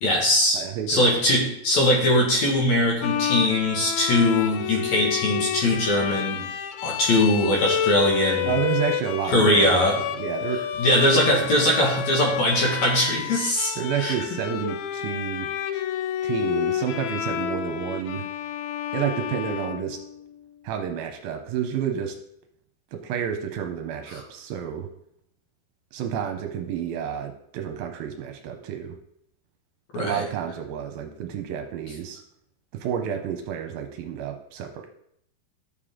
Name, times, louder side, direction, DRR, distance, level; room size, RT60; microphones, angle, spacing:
voice 1, 0.0-6.4 6.8-8.6 9.3-10.0 10.8-14.1 24.1-24.2 29.9-30.2, left 1 dB, 55° left, -1 dB, 2.7 m, -21 dB
voice 2, 0.5-1.3 8.5-10.7 11.1-11.7 13.8-15.5 16.2-18.3 18.9-20.0 20.6-22.2 22.9-24.9 25.9-29.0 29.9-32.2 32.7-34.9, right 8 dB, 80° right, 5 dB, 2.4 m, -30 dB
Bowed string instrument, 3.0-20.4, left 10 dB, 80° left, 2.3 m, -30 dB
11.5 x 6.9 x 3.8 m, 0.73 s
omnidirectional pair, 4.5 m